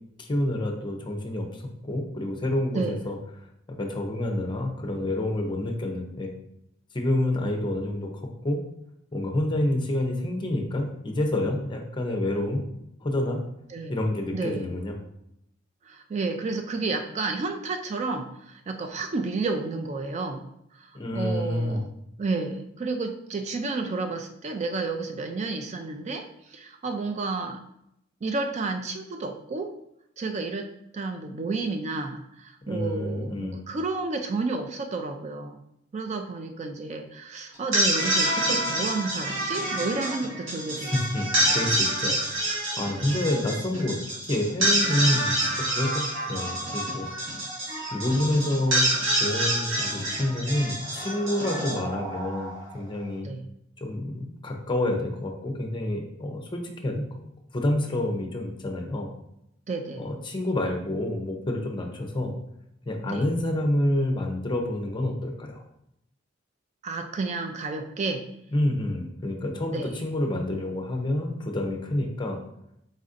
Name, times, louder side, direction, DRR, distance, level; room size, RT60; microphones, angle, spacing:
voice 1, 0.2-3.2 3.7-6.3 6.9-8.6 9.1-12.6 13.0-13.4 13.9-15.0 20.9-21.8 32.7-33.6 40.8-44.0 44.3-45.4 45.7-47.1 47.9-48.8 49.1-53.3 53.8-57.2 57.5-59.1 60.0-62.3 62.9-65.6 68.5-72.4, left 1 dB, 25° left, 2 dB, 0.6 m, -28 dB
voice 2, 14.3-14.7 15.9-20.5 20.7-21.9 22.2-27.6 28.2-29.7 30.2-30.7 30.9-35.6 35.9-40.9 42.0-42.2 53.2-53.4 59.7-60.1 63.1-63.2 66.8-68.2 69.7-69.9, right 3 dB, 35° right, 5 dB, 0.3 m, -31 dB
sound 1, 37.5-52.8, right 1 dB, 80° right, 1.4 m, -27 dB
4.1 x 4.0 x 2.5 m, 0.78 s
head